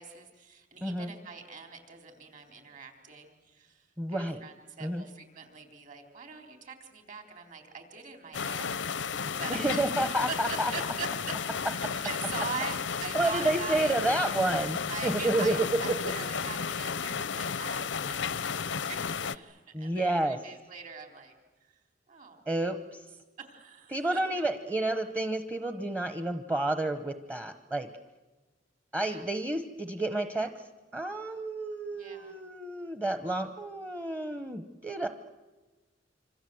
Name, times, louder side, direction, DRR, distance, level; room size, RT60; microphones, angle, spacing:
voice 1, 0.0-9.9 10.2-14.0 14.9-21.3 21.6-22.4 22.7-22.8 23.4-24.2 29.0-29.3 31.9-32.4, right 5 dB, 45° right, 4 dB, 3.9 m, -43 dB
voice 2, 0.8-1.1 4.0-4.4 4.8-5.0 9.5-10.7 13.1-15.7 19.7-20.4 22.5-23.0 23.9-27.9 28.9-30.5 30.9-35.1, right 2 dB, 15° right, 8 dB, 1.0 m, -30 dB
sound 1, 8.3-19.4, left 6 dB, 85° left, 0.8 m, -33 dB
26.5 x 26.5 x 7.8 m, 1.2 s
head